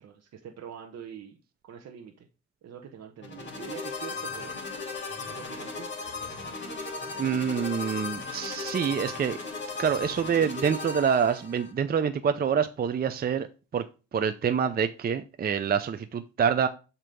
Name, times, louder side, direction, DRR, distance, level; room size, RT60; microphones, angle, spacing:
voice 1, 0.0-2.3 2.6-4.9 5.2-5.9, right 8 dB, 60° right, 0.9 m, -45 dB
sound 1, 3.2-11.7, left 4 dB, 40° left, 2.3 m, -36 dB
voice 2, 7.2-9.4 9.8-13.5 13.7-13.9 14.1-16.7, right 7 dB, 30° right, 0.5 m, -26 dB
7.6 x 2.9 x 5.2 m
cardioid pair, 90°, 30 cm